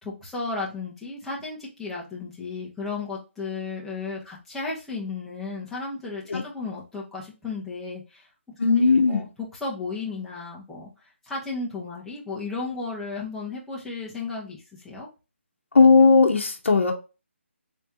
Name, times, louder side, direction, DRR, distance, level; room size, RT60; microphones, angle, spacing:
voice 1, 0.0-8.3 8.8-10.9 11.2-15.1, left 3 dB, 5° left, -5 dB, 0.9 m, -34 dB
voice 2, 8.6-9.2 15.7-16.9, left 4 dB, 70° left, 3 dB, 0.8 m, -17 dB
3.5 x 3.3 x 2.8 m, 0.29 s
figure-of-eight pair, 155°, 7 cm